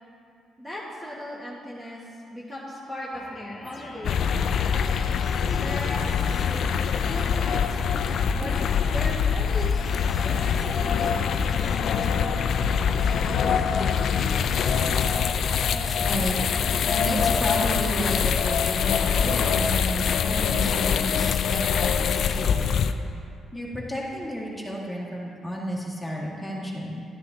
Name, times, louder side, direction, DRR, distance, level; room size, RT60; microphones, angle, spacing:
voice 1, 0.6-2.0 2.3-4.9 5.6-7.7 8.3-8.6 8.9-9.8 10.2-12.4, left 1 dB, 10° right, -7 dB, 1.5 m, -38 dB
sound 1, 3.1-14.0, left 3 dB, 50° left, 1.3 m, -45 dB
sound 2, 4.0-22.9, left 7 dB, 65° left, 0.4 m, -24 dB
voice 2, 15.7-16.4 16.9-22.7 23.5-27.0, equal, 5° left, -5 dB, 2.0 m, -32 dB
12.5 x 9.9 x 2.8 m, 2.5 s
cardioid pair, 90°, 0 cm